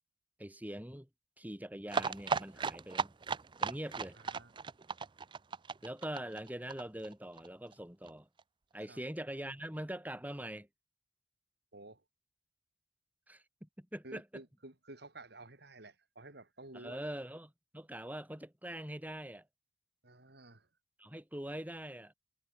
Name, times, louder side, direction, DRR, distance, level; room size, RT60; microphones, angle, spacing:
voice 1, 0.4-1.1 1.4-3.1 3.6-4.2 5.8-8.3 8.7-10.7 13.3-14.4 16.7-19.5 21.0-22.1, right 1 dB, 10° right, 3.6 m, -43 dB
sound 1, 1.9-7.5 7.7-7.8 8.1-8.2 8.4-8.5, right 5 dB, 25° right, 0.4 m, -36 dB
voice 2, 4.2-4.5 8.9-9.0 11.7-12.0 14.0-17.0 20.0-20.7, right 2 dB, 65° right, 3.5 m, -52 dB
head